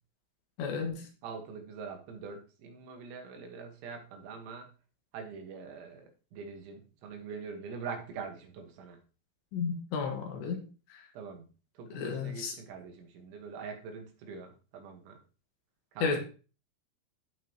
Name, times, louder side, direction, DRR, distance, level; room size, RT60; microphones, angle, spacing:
voice 1, 0.6-1.1 9.5-10.7 10.9-11.0 11.9-12.6 16.0-16.2, left 5 dB, 75° left, 3.7 m, -33 dB
voice 2, 1.2-4.7 5.1-9.0 11.1-11.5 11.8-15.2 15.9-16.2, right 5 dB, 90° right, 4.0 m, -44 dB
15.0 x 5.5 x 3.0 m
omnidirectional pair, 5.2 m